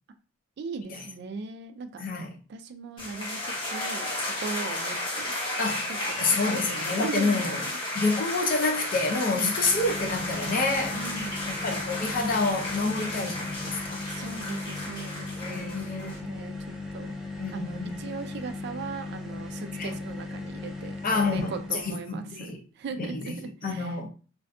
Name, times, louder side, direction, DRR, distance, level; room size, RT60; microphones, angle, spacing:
voice 1, 0.6-2.0 2.5-4.1 4.4-5.4 5.9-7.8 9.3-9.6 10.9-11.5 14.1-17.1 17.5-24.0, right 4 dB, 60° right, 0.3 m, -39 dB
voice 2, 2.0-2.4 5.6-5.9 6.2-7.6 7.9-11.0 11.5-14.0 15.4-16.1 17.4-18.0 19.7-20.0 21.0-22.6 23.0-23.4 23.6-24.1, left 3 dB, 45° left, 0.5 m, -28 dB
sound 1, 3.0-16.2, left 1 dB, 25° left, 0.9 m, -33 dB
sound 2, 9.4-22.0, left 3 dB, 5° right, 0.5 m, -37 dB
2.5 x 2.4 x 2.3 m
head